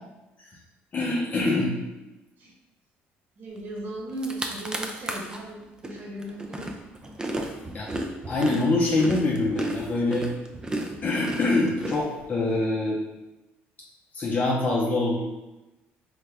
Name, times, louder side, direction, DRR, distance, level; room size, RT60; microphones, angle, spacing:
voice 1, 0.9-1.8 7.7-7.9 8.3-10.3 11.0-13.0 14.1-15.2, left 2 dB, 35° left, -3 dB, 0.6 m, -24 dB
voice 2, 3.4-6.7, right 1 dB, 50° right, -3 dB, 1.2 m, -37 dB
sound 1, 3.8-3.9 4.1-5.4 5.8-12.6, right 1 dB, 15° right, 0.4 m, -33 dB
4.0 x 2.2 x 3.3 m, 1.0 s
cardioid pair, 95°, 4 cm